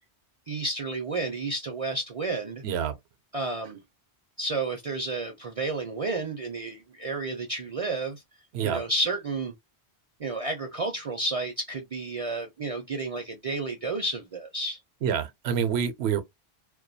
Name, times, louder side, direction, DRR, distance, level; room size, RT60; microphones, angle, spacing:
voice 1, 0.5-2.6 3.3-3.8 4.4-8.2 8.6-9.5 10.2-14.8, right 2 dB, 45° right, 0.5 m, -31 dB
voice 2, 2.6-2.9 8.5-8.8 15.0-16.2, right 8 dB, 80° right, 0.8 m, -27 dB
2.2 x 2.2 x 2.5 m
omnidirectional pair, 1.1 m